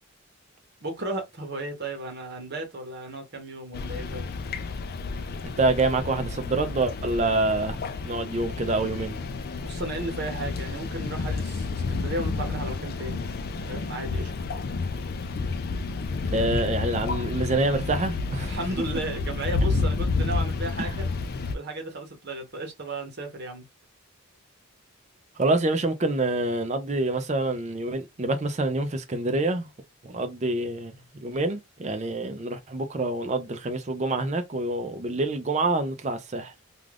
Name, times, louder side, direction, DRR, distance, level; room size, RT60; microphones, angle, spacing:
voice 1, 0.8-4.3 9.6-13.3 13.7-14.3 18.4-21.0 21.5-23.7, right 2 dB, 45° right, 0.9 m, -34 dB
sound 1, 3.7-21.6, left 4 dB, 45° left, 0.3 m, -30 dB
voice 2, 5.6-7.8 8.0-9.2 16.3-18.6 20.8-20.9 25.4-29.7 30.0-36.5, right 2 dB, 30° right, 0.5 m, -26 dB
2.4 x 2.4 x 3.3 m
head